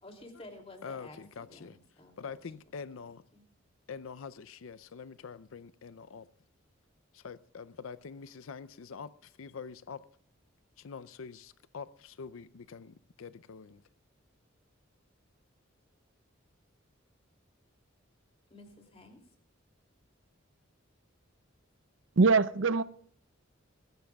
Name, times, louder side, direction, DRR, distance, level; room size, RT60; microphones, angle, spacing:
voice 1, 0.0-2.4 3.3-3.4 18.5-19.3, left 2 dB, 30° left, 2.8 m, -52 dB
voice 2, 0.8-1.8 2.2-3.2 3.9-6.3 7.1-10.0 10.8-13.8, left 5 dB, 85° left, 0.5 m, -45 dB
voice 3, 22.2-22.8, right 4 dB, 65° right, 0.5 m, -23 dB
21.0 x 15.5 x 2.3 m
head